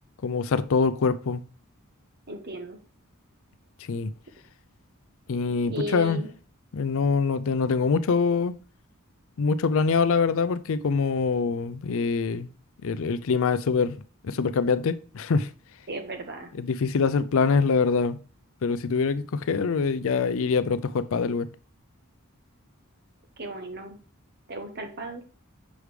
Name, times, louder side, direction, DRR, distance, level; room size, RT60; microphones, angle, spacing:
voice 1, 0.2-1.4 3.9-4.1 5.3-6.2 6.7-8.5 9.4-12.5 12.8-15.5 16.6-18.2 18.6-21.5, left 5 dB, 65° left, 0.5 m, -24 dB
voice 2, 2.3-2.8 5.6-6.3 15.9-16.5 23.4-24.0 24.5-25.2, right 1 dB, 50° right, 1.1 m, -35 dB
6.2 x 5.0 x 3.2 m
head